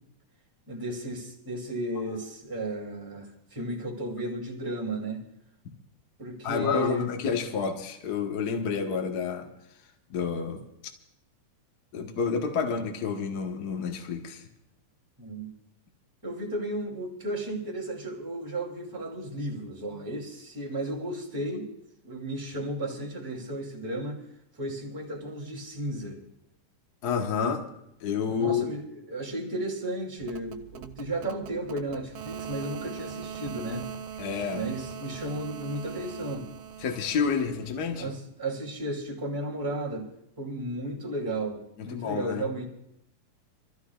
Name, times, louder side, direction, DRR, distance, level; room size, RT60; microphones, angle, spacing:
voice 1, 0.7-5.2 6.2-7.1 15.2-15.5 16.2-21.7 22.0-24.2 24.6-26.2 28.3-33.9 34.5-36.5 37.9-40.1 40.4-42.7, right 1 dB, 5° right, -1 dB, 2.4 m, -34 dB
voice 2, 6.4-9.5 10.1-10.6 11.9-14.4 27.0-27.7 28.0-28.7 34.2-34.6 36.8-38.1 41.8-42.5, left 6 dB, 60° left, 3 dB, 1.0 m, -29 dB
sound 1, 30.2-38.1, right 8 dB, 80° right, 2.5 m, -41 dB
27.5 x 14.0 x 2.4 m, 0.81 s
omnidirectional pair, 3.9 m